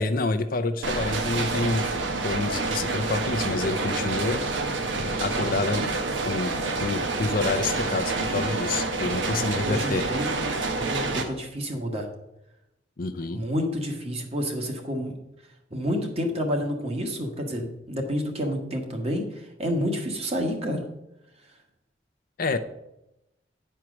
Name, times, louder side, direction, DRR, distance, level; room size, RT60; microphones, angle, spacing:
voice 1, 0.0-1.9 2.2-4.4 5.2-6.0 6.2-6.5 6.8-10.0 13.0-13.4 22.4-22.6, left 3 dB, 50° left, 9 dB, 0.6 m, -28 dB
sound 1, 0.8-11.2, right 3 dB, 80° right, 1.1 m, -28 dB
voice 2, 9.4-12.1 13.3-15.2 15.7-20.8, equal, 35° right, 3 dB, 1.4 m, -29 dB
9.7 x 4.6 x 6.1 m, 0.89 s
head